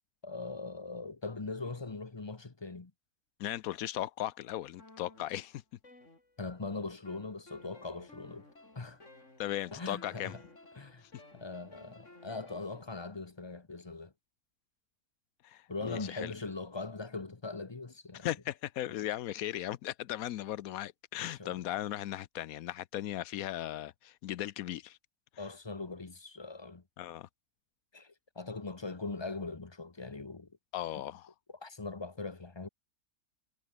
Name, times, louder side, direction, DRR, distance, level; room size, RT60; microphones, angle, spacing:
voice 1, 0.2-2.9 6.4-8.5 8.7-9.0 9.7-10.4 10.8-11.1 11.3-14.1 15.7-18.3 21.4-21.7 25.4-26.8 27.9-30.5 30.9-31.0 31.5-32.7, left 3 dB, 20° left, 0.9 m, -41 dB
voice 2, 3.4-5.6 9.4-10.3 11.0-11.1 15.4-16.3 18.2-25.0 27.0-27.3 30.7-31.3, left 13 dB, 90° left, 1.1 m, -37 dB
sound 1, 4.8-6.6 7.1-12.8, left 2 dB, 60° left, 5.8 m, -56 dB
omnidirectional pair, 1.5 m